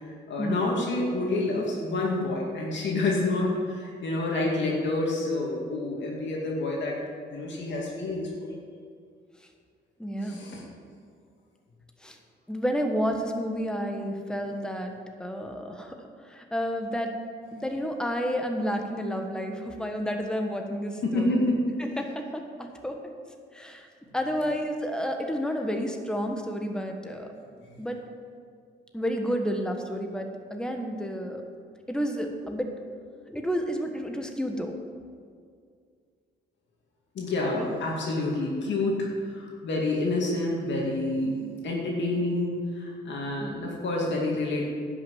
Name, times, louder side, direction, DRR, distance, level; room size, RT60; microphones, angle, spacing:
voice 1, 0.3-7.0 7.3-8.5 10.2-10.6 21.0-21.6 37.1-44.6, left 2 dB, 65° left, -3 dB, 2.3 m, -28 dB
voice 2, 10.0-10.4 12.0-12.2 12.5-17.2 17.5-21.3 21.8-23.0 23.5-23.9 24.1-27.3 27.8-28.0 28.9-31.4 31.9-32.7 33.2-34.7 37.6-37.7 43.4-43.6, equal, 5° left, 3 dB, 1.3 m, -31 dB
10.5 x 6.3 x 7.8 m, 2.1 s
cardioid pair, 90°, 20 cm